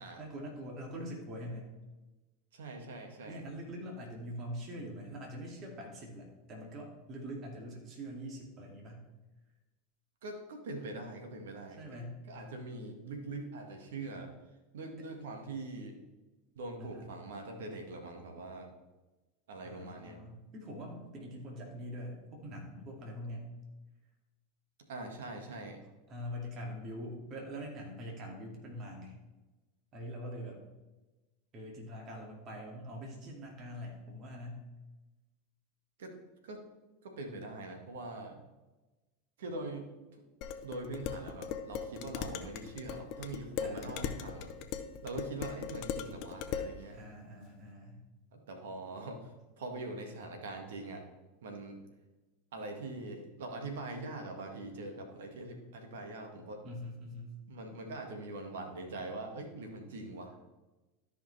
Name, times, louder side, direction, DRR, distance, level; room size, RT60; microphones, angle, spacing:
voice 1, 0.2-1.7 3.2-9.0 11.7-12.2 15.0-15.1 16.8-17.1 19.6-23.5 26.1-29.1 29.9-30.6 31.5-34.7 43.6-44.4 46.9-48.0 56.6-57.4, equal, 40° right, 0 dB, 2.3 m, -44 dB
voice 2, 2.5-3.4 10.2-11.8 12.3-14.3 14.7-16.0 16.5-18.7 19.5-20.2 24.9-25.8 36.0-36.1 36.4-36.6 37.0-38.4 39.4-39.9 40.6-44.5 45.0-47.0 48.3-49.2 49.6-51.0 51.4-51.8 52.5-56.6 57.5-60.4, right 2 dB, 75° right, 4 dB, 1.6 m, -43 dB
Dishes pots and pans, 40.4-46.7, left 8 dB, 55° left, 0.7 m, -39 dB
13.5 x 5.1 x 3.3 m, 1.1 s
hypercardioid pair, 90°, 0 cm